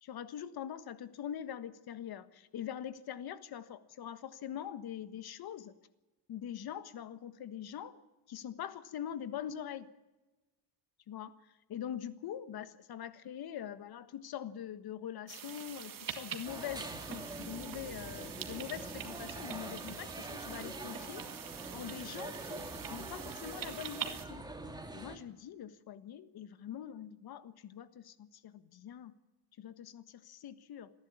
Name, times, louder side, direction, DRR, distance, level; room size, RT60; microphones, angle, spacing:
voice 1, 0.0-5.7 6.3-8.0 8.3-9.9 11.1-11.3 11.7-21.3 21.7-24.5 24.9-29.1 29.6-30.9, left 10 dB, 55° left, 13 dB, 1.4 m, -43 dB
sound 1, 15.3-24.3, right 8 dB, 45° right, 2.2 m, -45 dB
sound 2, 16.4-25.2, right 2 dB, 10° right, 2.0 m, -45 dB
28.5 x 11.5 x 8.7 m, 1.1 s
cardioid pair, 105°, 44 cm